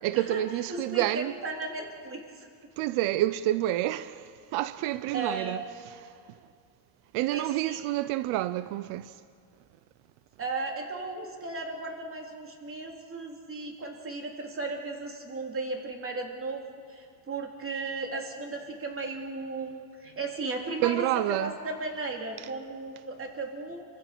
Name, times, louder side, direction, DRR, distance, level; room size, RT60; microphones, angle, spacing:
voice 1, 0.0-1.3 2.8-5.6 5.9-6.4 7.1-9.2 20.8-21.5, right 15 dB, 85° right, 0.8 m, -29 dB
voice 2, 0.7-2.5 5.1-5.6 7.3-7.8 10.4-16.6 16.9-23.8, right 3 dB, 25° right, 3.5 m, -36 dB
29.5 x 24.5 x 6.1 m
cardioid pair, 135°, 47 cm